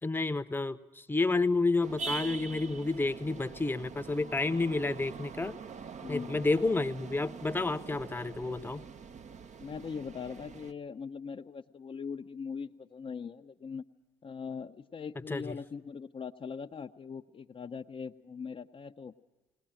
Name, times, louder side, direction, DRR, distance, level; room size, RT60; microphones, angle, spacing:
voice 1, 0.0-5.5 6.1-8.8 15.3-15.6, left 3 dB, 10° left, 10 dB, 0.9 m, -30 dB
sound 1, 1.8-10.7, right 5 dB, 45° right, 0.9 m, -44 dB
voice 2, 6.0-6.5 9.6-13.8 14.2-19.1, left 6 dB, 35° left, 4 dB, 0.7 m, -41 dB
19.5 x 18.5 x 8.9 m, 1.1 s
hypercardioid pair, 55°, 17 cm